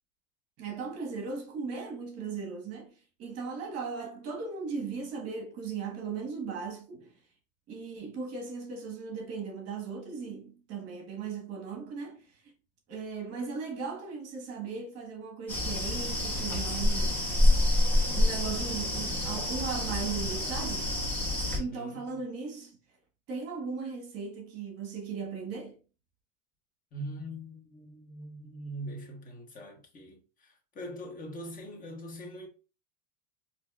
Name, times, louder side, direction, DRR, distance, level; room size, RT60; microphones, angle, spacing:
voice 1, 0.6-7.1 7.7-12.5 12.9-17.2 18.1-21.0 21.6-22.8 23.3-25.8, right 5 dB, 40° right, 1.2 m, -37 dB
sound 1, 15.5-21.6, left 1 dB, 5° left, 1.3 m, -27 dB
voice 2, 21.5-22.0 26.9-32.5, equal, 20° left, 1.2 m, -42 dB
4.7 x 2.7 x 2.3 m
supercardioid pair, 125°, 37 cm